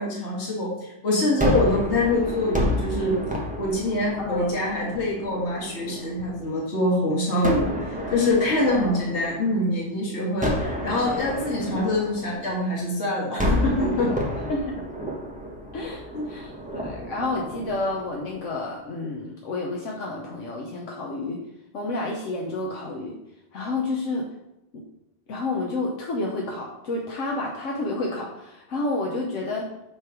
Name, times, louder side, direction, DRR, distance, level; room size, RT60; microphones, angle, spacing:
voice 1, 0.0-3.2 3.6-14.4 15.8-16.3, left 1 dB, 65° left, -3 dB, 1.7 m, -25 dB
Gunshot gunfire, 1.4-6.5 7.4-9.8 10.4-12.9 13.4-18.6, equal, 5° right, 1.0 m, -30 dB
voice 2, 4.2-4.5 8.7-9.0 14.5-14.7 15.7-21.4 21.7-23.2 23.5-24.2 24.7-24.8 25.3-29.7, left 2 dB, 80° left, -1 dB, 1.2 m, -30 dB
7.5 x 3.3 x 4.7 m, 0.92 s
omnidirectional pair, 1.2 m